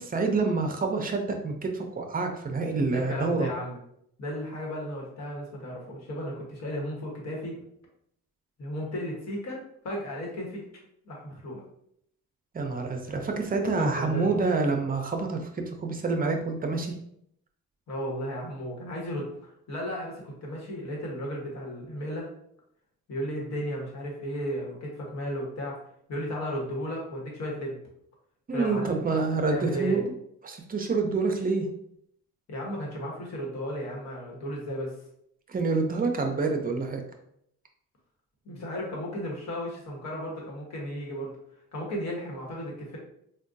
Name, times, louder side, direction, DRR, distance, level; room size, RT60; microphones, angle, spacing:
voice 1, 0.0-3.5 12.5-16.9 28.5-30.1 30.4-31.7 35.5-37.0, right 3 dB, 30° right, 4 dB, 0.5 m, -27 dB
voice 2, 2.9-3.8 4.2-7.6 8.6-10.6 11.0-11.6 13.8-14.3 17.9-22.3 23.1-25.8 26.1-27.8 28.5-30.0 32.5-34.9 38.4-41.3 41.7-43.0, equal, 65° left, -2 dB, 1.2 m, -34 dB
3.5 x 2.2 x 2.6 m, 0.73 s
cardioid pair, 90°, 30 cm